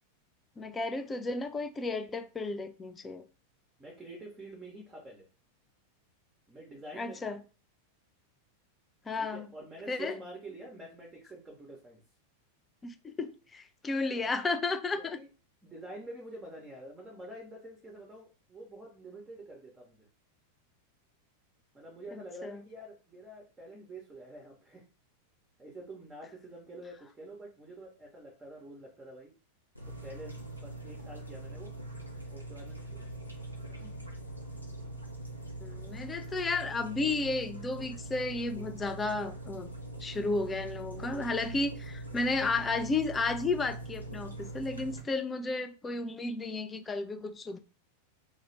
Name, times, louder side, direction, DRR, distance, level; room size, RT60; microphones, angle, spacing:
voice 1, 0.6-3.3 6.9-7.4 9.1-9.4 9.9-10.2 12.8-15.2 22.4-22.6 33.8-33.9 35.6-39.7 40.0-47.6, left 3 dB, 15° left, 0.3 m, -33 dB
voice 2, 3.8-5.3 6.5-7.3 9.2-12.0 14.1-14.3 15.0-15.3 15.6-20.1 21.7-24.8 25.6-29.3 29.8-30.3 30.6-31.7 32.3-33.2, right 1 dB, 15° right, 0.7 m, -47 dB
sound 1, 29.8-45.0, right 2 dB, 90° left, 0.5 m, -42 dB
2.3 x 2.1 x 3.1 m
figure-of-eight pair, 90°, 0 cm